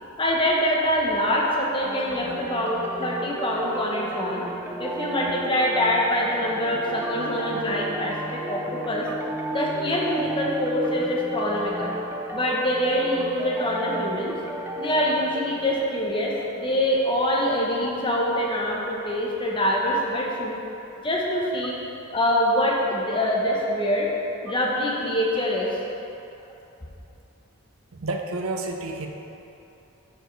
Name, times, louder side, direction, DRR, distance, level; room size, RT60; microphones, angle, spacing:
voice 1, 0.2-4.4 4.8-9.1 9.5-11.9 12.3-14.3 14.7-20.6 21.0-21.7 22.1-24.1 24.4-25.7, left 1 dB, 25° left, -3 dB, 0.9 m, -25 dB
sound 1, 1.8-16.3, right 1 dB, 10° right, 0.4 m, -33 dB
voice 2, 27.9-29.1, right 2 dB, 75° right, 3 dB, 0.6 m, -30 dB
12.5 x 4.5 x 3.2 m, 2.9 s
head